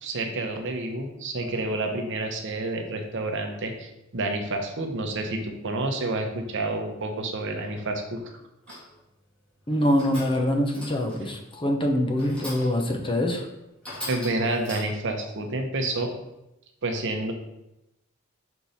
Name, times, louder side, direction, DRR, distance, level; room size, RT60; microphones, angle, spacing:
voice 1, 0.0-8.3 8.7-8.8 14.1-16.1 16.8-17.3, right 2 dB, 60° right, 4 dB, 0.8 m, -29 dB
sound 1, 8.7-9.0 9.7-10.5 10.7-11.3 12.1-12.9 13.3-13.4 13.8-15.2, left 1 dB, 5° left, 2.1 m, -40 dB
voice 2, 9.7-13.5, left 1 dB, 25° left, 3 dB, 0.8 m, -24 dB
5.3 x 4.5 x 4.2 m, 0.89 s
head